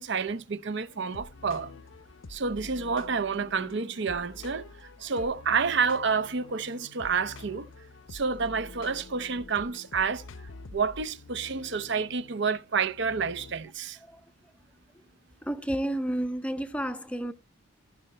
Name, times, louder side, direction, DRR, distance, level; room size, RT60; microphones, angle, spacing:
voice 1, 0.0-1.7 2.3-4.7 5.0-7.7 8.1-10.3 10.7-14.0, right 5 dB, 55° right, 0.7 m, -29 dB
sound 1, 0.9-13.7, left 3 dB, 70° left, 0.6 m, -47 dB
voice 2, 15.4-17.3, right 1 dB, 5° left, 0.6 m, -31 dB
14.5 x 5.6 x 4.3 m
head